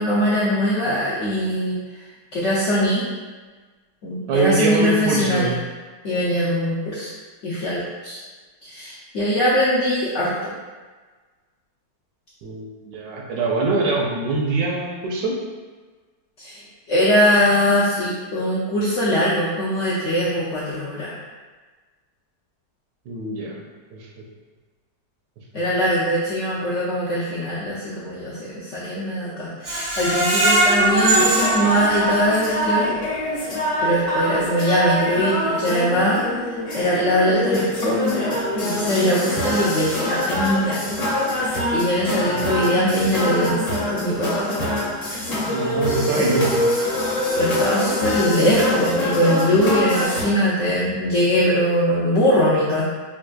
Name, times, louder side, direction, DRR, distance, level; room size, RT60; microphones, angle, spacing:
voice 1, 0.0-1.8 2.3-3.1 4.0-5.5 6.0-7.1 7.4-8.2 8.6-10.5 16.4-16.6 16.9-21.1 25.5-33.0 33.4-36.2 36.7-40.9 41.3-43.6 43.9-44.6 46.1-46.3 47.4-52.8, equal, 70° left, -8 dB, 0.7 m, -21 dB
voice 2, 4.3-5.5 12.4-15.4 23.1-23.6 23.9-24.2 25.5-25.6 42.3-42.5 45.5-46.6, right 3 dB, 85° right, -1 dB, 1.3 m, -24 dB
Screech, 29.6-32.6 33.1-33.2 33.6-33.7, right 2 dB, 55° right, 0.7 m, -21 dB
sound 1, 30.8-50.2, left 1 dB, 55° left, 1.1 m, -24 dB
4.1 x 2.5 x 2.2 m, 1.4 s
omnidirectional pair, 1.8 m